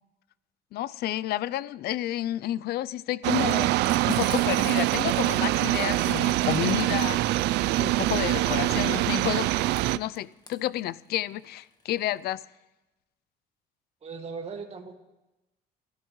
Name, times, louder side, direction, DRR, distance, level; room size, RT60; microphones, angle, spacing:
voice 1, 0.7-7.2 7.8-9.5 9.9-12.4, left 14 dB, 70° left, 0.5 m, -30 dB
sound 1, 3.2-10.0, right 16 dB, 85° right, 0.4 m, -24 dB
Frying (food), 3.5-12.2, left 3 dB, 25° left, 1.4 m, -46 dB
voice 2, 14.0-15.0, right 5 dB, 40° right, 2.0 m, -38 dB
29.0 x 12.5 x 3.2 m
cardioid pair, 110°, 17 cm